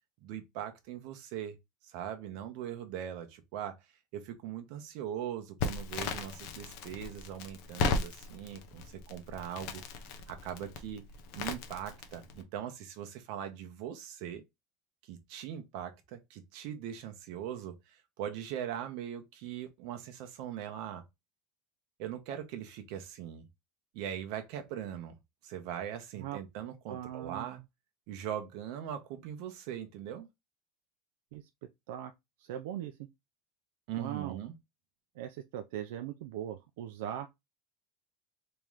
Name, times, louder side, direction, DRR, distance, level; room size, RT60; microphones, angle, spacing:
voice 1, 0.2-1.5 1.8-3.8 4.1-9.8 10.3-11.0 11.3-14.4 15.1-21.0 22.0-23.4 23.9-25.2 25.4-27.6 28.1-30.3 33.9-34.5, right 10 dB, 60° right, 0.8 m, -40 dB
Crackle, 5.6-12.4, left 4 dB, 55° left, 0.7 m, -37 dB
voice 2, 26.9-27.6 31.3-31.4 31.9-32.1 32.4-33.0 34.0-34.4 35.2-37.3, right 11 dB, 80° right, 0.4 m, -40 dB
3.1 x 2.9 x 3.6 m
cardioid pair, 160°, 0 cm